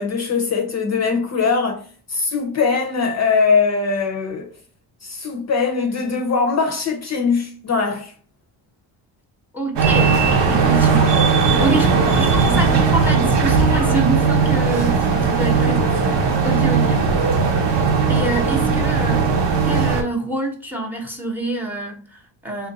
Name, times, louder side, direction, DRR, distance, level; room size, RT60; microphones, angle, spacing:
voice 1, 0.0-1.8 2.1-4.5 5.0-8.1, left 5 dB, 35° left, 0.6 m, -21 dB
voice 2, 9.5-10.2 10.5-16.0 16.4-17.1 18.1-22.7, right 2 dB, 5° right, 0.8 m, -26 dB
sound 1, 9.8-20.0, right 5 dB, 70° right, 1.0 m, -17 dB
3.4 x 2.5 x 3.9 m
cardioid pair, 110°, 44 cm